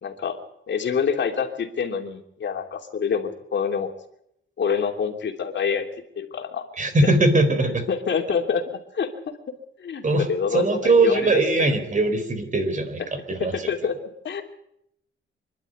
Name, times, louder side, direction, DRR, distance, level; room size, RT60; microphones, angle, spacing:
voice 1, 0.0-0.3 0.7-3.9 4.6-5.9 6.2-6.6 7.0-7.1 7.9-8.6 8.9-9.1 9.8-11.4 13.4-14.4, left 6 dB, 60° left, 4 dB, 2.9 m, -26 dB
voice 2, 6.8-7.8 10.0-13.0 13.3-13.7, right 2 dB, 35° right, 8 dB, 4.1 m, -21 dB
26.5 x 12.0 x 9.5 m, 0.75 s
wide cardioid pair, 135°, 21 cm